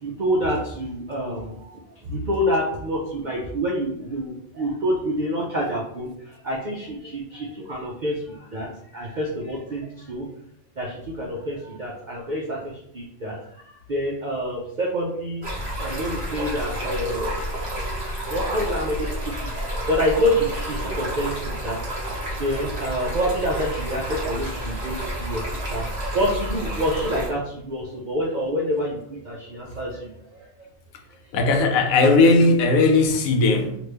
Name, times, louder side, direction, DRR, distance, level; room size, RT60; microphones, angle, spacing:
voice 1, 0.0-10.3 10.8-15.4 15.8-17.4 18.3-25.9 26.1-30.5, equal, 65° right, -3 dB, 0.4 m, -27 dB
Stream, 15.4-27.3, right 1 dB, 35° right, 1.0 m, -30 dB
voice 2, 31.3-33.8, left 3 dB, 85° left, 5 dB, 1.0 m, -17 dB
3.0 x 2.5 x 3.3 m, 0.73 s
omnidirectional pair, 1.4 m